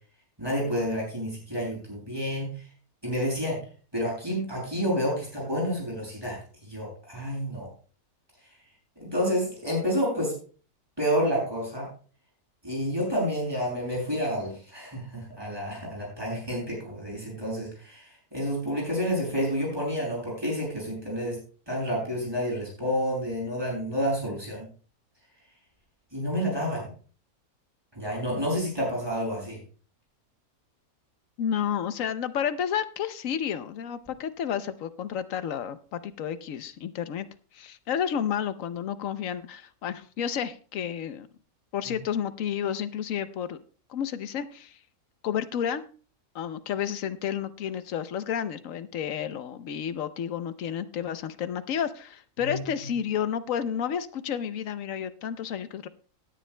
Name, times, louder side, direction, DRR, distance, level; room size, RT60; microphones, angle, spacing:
voice 1, 0.4-2.5 3.0-3.6 3.9-6.4 6.6-7.7 9.0-10.3 11.0-11.9 12.6-21.4 21.7-24.7 26.1-26.9 27.9-29.6 52.4-52.6, equal, 15° right, -3 dB, 7.0 m, -29 dB
voice 2, 31.4-37.3 37.5-41.3 41.7-43.6 43.9-44.8 45.2-45.8 46.3-55.9, left 8 dB, 70° left, 13 dB, 1.0 m, -31 dB
18.0 x 10.0 x 2.2 m, 0.39 s
omnidirectional pair, 1.5 m